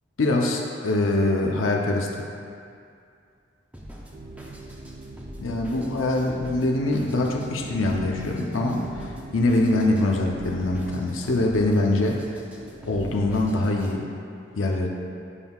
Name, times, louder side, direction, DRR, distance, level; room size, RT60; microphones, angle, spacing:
voice 1, 0.2-2.2 5.4-12.2 12.9-14.1 14.6-14.9, left 2 dB, 85° left, 0 dB, 0.6 m, -23 dB
Drum kit, 3.7-13.9, equal, 5° right, 0.5 m, -44 dB
sound 1, 4.1-13.6, right 2 dB, 60° right, 0.5 m, -41 dB
9.7 x 5.4 x 2.3 m, 2.4 s
head